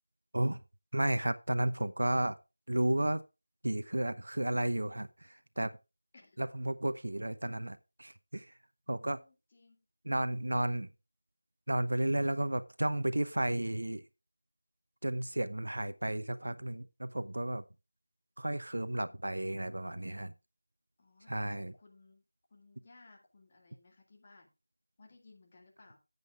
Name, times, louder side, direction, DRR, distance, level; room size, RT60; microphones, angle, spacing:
voice 1, 0.9-2.4 2.7-3.2 3.6-5.7 6.4-8.5 8.9-9.2 10.0-10.9 11.7-14.0 15.0-17.6 18.4-20.3 21.3-21.7, right 1 dB, 70° right, 0.7 m, -33 dB
voice 2, 8.9-9.8 18.8-19.2 21.0-22.2 22.5-24.5 25.0-26.0, left 3 dB, 30° left, 2.2 m, -60 dB
14.0 x 8.0 x 2.4 m
figure-of-eight pair, 170°, 0 cm